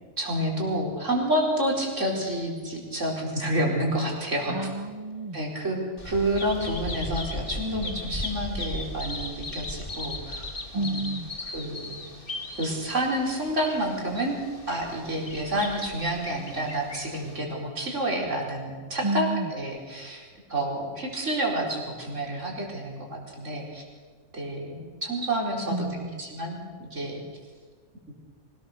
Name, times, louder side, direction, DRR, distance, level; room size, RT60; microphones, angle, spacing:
voice 1, 0.2-4.7 5.3-10.5 10.7-11.0 11.5-12.0 12.6-14.4 14.7-23.8 24.3-25.9 26.2-26.6 26.9-27.2, right 1 dB, 75° right, -1 dB, 4.8 m, -29 dB
voice 2, 4.5-5.4 10.7-11.3 19.0-19.5 25.7-26.2, right 2 dB, 25° right, 10 dB, 0.9 m, -30 dB
Bird vocalization bird call bird song, 6.0-17.4, left 2 dB, 45° left, 2.5 m, -37 dB
25.0 x 18.5 x 6.8 m, 1.5 s
omnidirectional pair, 1.3 m